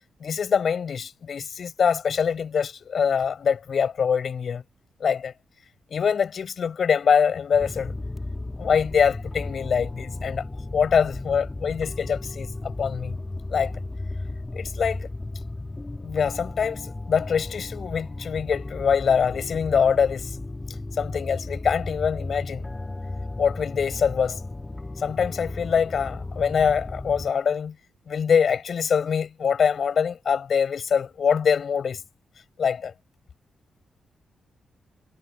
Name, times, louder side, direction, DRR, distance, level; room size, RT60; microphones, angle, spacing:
voice 1, 0.2-4.6 5.0-5.3 5.9-7.9 8.6-10.4 10.7-13.2 13.5-13.7 14.5-15.1 16.0-20.3 21.0-22.7 23.4-24.4 25.0-27.7 28.1-32.0 32.6-32.9, left 7 dB, 55° left, 7.2 m, -24 dB
sound 1, 7.5-27.3, left 2 dB, 20° left, 4.0 m, -35 dB
cardioid pair, 100°, 0 cm